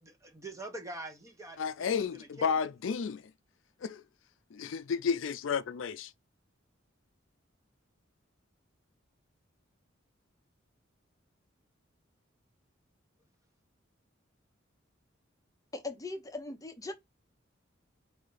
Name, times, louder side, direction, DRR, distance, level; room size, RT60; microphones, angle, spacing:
voice 1, 0.0-2.5, right 2 dB, 15° right, 1.2 m, -45 dB
voice 2, 1.6-3.2 3.8-4.0 4.5-6.1, left 6 dB, 75° left, 0.4 m, -32 dB
voice 3, 15.7-16.9, left 2 dB, 20° left, 0.9 m, -39 dB
5.0 x 2.7 x 3.8 m
head